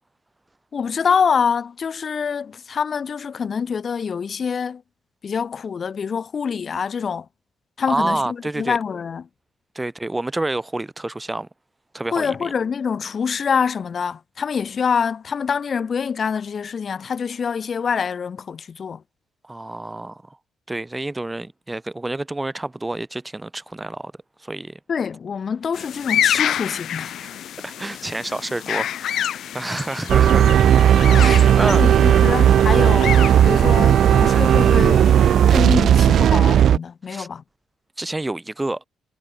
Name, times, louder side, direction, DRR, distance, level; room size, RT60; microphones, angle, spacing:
voice 1, 0.7-4.8 5.2-7.3 7.8-9.2 12.1-19.0 24.9-27.1 31.7-33.2 33.4-35.1 35.5-37.4, left 6 dB, 45° left, 3.7 m, -25 dB
voice 2, 7.9-8.8 9.8-11.5 11.9-12.5 19.4-20.4 20.7-24.1 24.4-24.8 27.2-27.4 27.6-30.5 30.9-31.8 37.1-37.3 38.0-38.8, right 2 dB, 15° right, 3.9 m, -28 dB
sound 1, 25.7-35.6, left 10 dB, 70° left, 5.8 m, -29 dB
sound 2, 30.1-36.8, right 10 dB, 65° right, 0.8 m, -14 dB
cardioid pair, 90°, 0 cm